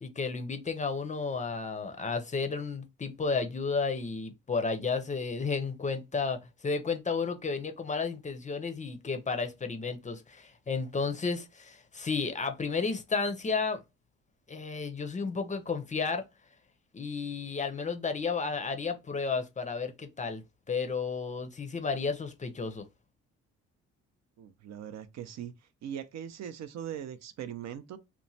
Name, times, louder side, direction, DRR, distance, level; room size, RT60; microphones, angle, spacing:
voice 1, 0.0-6.4 6.6-13.8 14.5-16.2 16.9-20.4 20.7-22.9, left 4 dB, 25° left, 0.5 m, -32 dB
voice 2, 24.4-25.5 25.8-28.0, right 9 dB, 65° right, 0.5 m, -40 dB
3.0 x 2.1 x 2.6 m
cardioid pair, 90°, 30 cm